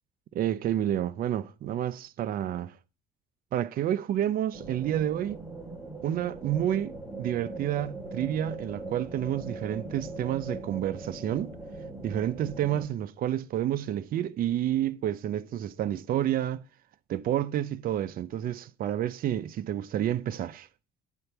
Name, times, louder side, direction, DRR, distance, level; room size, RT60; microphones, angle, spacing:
voice 1, 0.3-2.8 3.5-5.4 6.0-11.6 12.0-16.6 17.1-20.7, right 11 dB, 60° right, 0.7 m, -29 dB
sound 1, 4.5-12.9, right 2 dB, 15° right, 3.5 m, -40 dB
10.5 x 4.5 x 6.9 m
cardioid pair, 110°, 17 cm